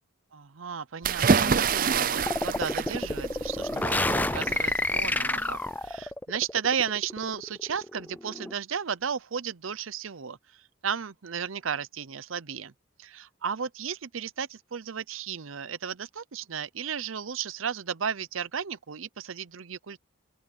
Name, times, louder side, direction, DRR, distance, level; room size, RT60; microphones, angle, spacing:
voice 1, 0.3-12.7 13.0-20.0, right 7 dB, 85° right, 0.7 m, -34 dB
sound 1, 1.0-5.9, right 5 dB, 45° right, 0.5 m, -28 dB
sound 2, 2.3-8.5, left 2 dB, 10° left, 0.4 m, -29 dB
open air
head